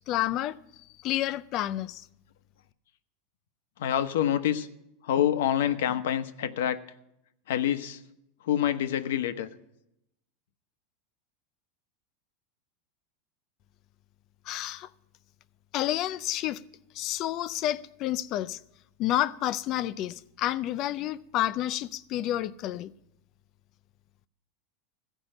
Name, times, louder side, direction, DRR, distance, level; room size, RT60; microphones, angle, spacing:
voice 1, 0.1-0.5 1.0-2.0 14.5-14.9 15.7-16.6 16.9-18.6 19.0-22.9, left 13 dB, 30° left, 0.4 m, -29 dB
voice 2, 3.8-4.7 5.0-6.8 7.5-8.0 8.4-9.5, left 10 dB, 80° left, 0.9 m, -26 dB
15.0 x 5.4 x 8.8 m
supercardioid pair, 175°, 0 cm